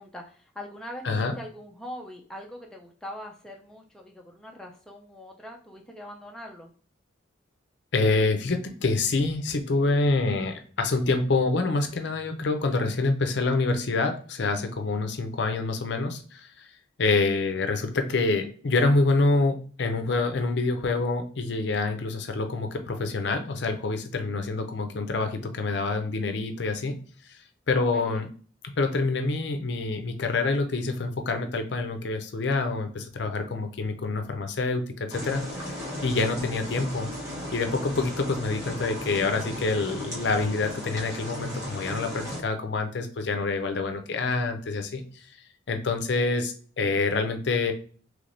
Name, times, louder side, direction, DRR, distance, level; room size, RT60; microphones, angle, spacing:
voice 1, 0.0-6.7 27.7-28.3, equal, 5° left, -1 dB, 0.4 m, -42 dB
voice 2, 7.9-16.7 17.0-27.0 27.7-28.3 28.6-37.1 37.5-45.0 45.7-47.7, left 3 dB, 60° left, 6 dB, 0.5 m, -26 dB
sound 1, 35.1-42.4, equal, 15° right, 0.9 m, -36 dB
3.3 x 3.1 x 2.5 m, 0.42 s
head